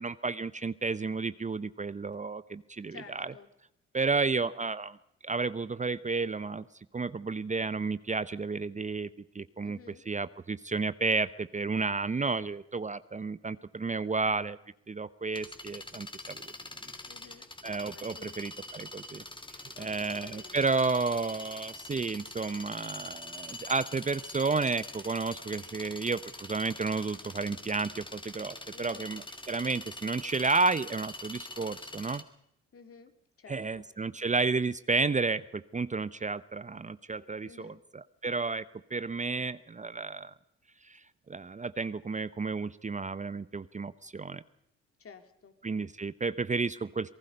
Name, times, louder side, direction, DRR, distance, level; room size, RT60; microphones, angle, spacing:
voice 1, 0.0-3.3 3.9-5.0 5.2-6.7 6.9-9.8 10.1-14.6 14.9-16.5 17.6-19.2 19.8-32.2 33.5-38.6 38.9-40.3 40.8-41.0 41.3-44.4 45.6-47.1, right 4 dB, 25° right, 15 dB, 0.8 m, -32 dB
voice 2, 2.9-3.5 9.6-10.0 17.1-17.5 17.9-18.4 19.8-20.9 28.7-29.1 32.7-33.1 33.4-33.8 37.4-37.8 45.0-45.5, left 5 dB, 50° left, 8 dB, 2.8 m, -52 dB
sound 1, 15.3-32.2, left 2 dB, 15° left, 2.7 m, -44 dB
27.0 x 19.0 x 5.3 m, 0.75 s
supercardioid pair, 60°, 29 cm